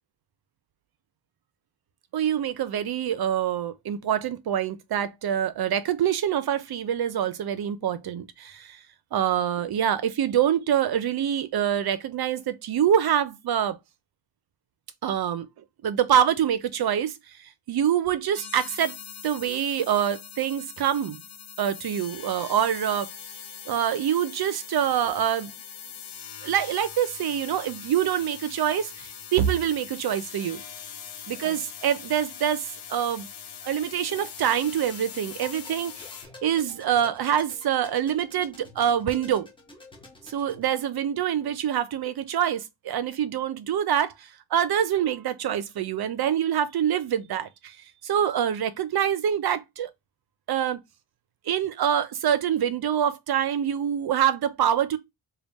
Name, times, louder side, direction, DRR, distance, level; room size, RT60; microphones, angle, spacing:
voice 1, 2.1-8.8 9.1-13.8 15.0-15.5 15.8-19.0 19.2-21.2 21.6-23.1 23.7-25.5 26.4-30.6 31.3-33.3 33.6-36.1 36.4-39.5 40.3-47.8 48.0-49.9 50.5-50.8 51.5-55.0, right 9 dB, 50° right, 0.5 m, -25 dB
sound 1, 18.3-36.2, left 8 dB, 75° left, 0.9 m, -42 dB
sound 2, 35.3-40.6, left 2 dB, 10° left, 0.7 m, -48 dB
3.5 x 2.2 x 4.0 m
wide cardioid pair, 180°, 50 cm